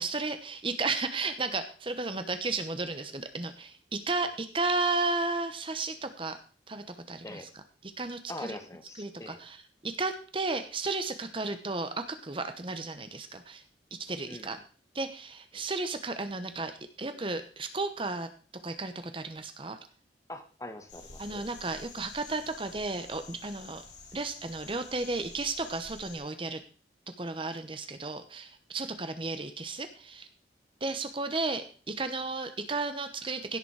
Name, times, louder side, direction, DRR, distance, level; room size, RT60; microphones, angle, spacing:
voice 1, 0.0-6.4 6.7-7.5 7.8-8.6 9.0-9.6 9.8-13.6 13.9-14.6 14.9-18.3 18.6-19.8 21.2-23.8 24.1-26.6 27.2-30.3 30.8-33.6, right 3 dB, 30° right, 9 dB, 1.0 m, -33 dB
voice 2, 8.3-9.4 14.3-14.6 15.5-15.6 20.3-21.4, left 1 dB, 20° left, 7 dB, 1.4 m, -43 dB
Cicadas of Central New Jersey, 20.9-26.2, left 4 dB, 80° left, 4.9 m, -50 dB
16.5 x 7.0 x 4.8 m, 0.39 s
head